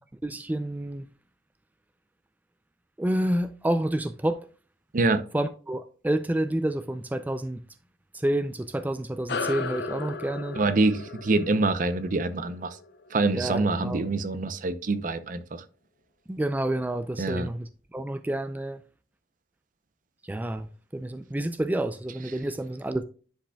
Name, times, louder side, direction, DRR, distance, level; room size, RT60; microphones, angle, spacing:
voice 1, 0.2-1.1 3.0-4.4 5.3-7.6 8.1-10.6 13.3-14.0 16.3-18.8 20.2-23.0, right 1 dB, 10° right, 0.3 m, -29 dB
voice 2, 4.9-5.3 10.6-12.8 13.1-15.6 17.2-17.5, right 3 dB, 50° right, 0.6 m, -25 dB
sound 1, 9.3-14.1, left 4 dB, 65° left, 0.6 m, -36 dB
10.0 x 5.0 x 2.3 m
head